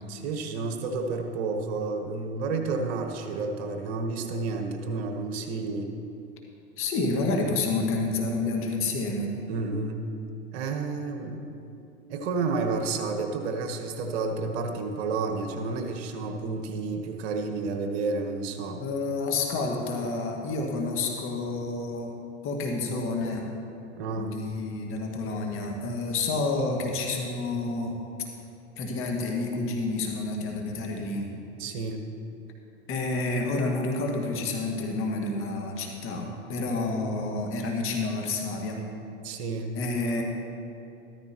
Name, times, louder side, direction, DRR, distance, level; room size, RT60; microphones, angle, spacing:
voice 1, 0.1-5.9 9.5-10.1 10.5-11.5 12.1-18.8 24.0-24.3 31.6-32.0 39.2-39.8, right 4 dB, 60° right, 4 dB, 1.4 m, -30 dB
voice 2, 6.8-9.3 18.8-22.1 22.4-23.5 24.1-27.9 28.8-31.3 32.9-38.9 39.8-40.2, left 3 dB, 35° left, 1 dB, 1.8 m, -29 dB
14.0 x 13.5 x 3.0 m, 2.8 s
hypercardioid pair, 110°, 36 cm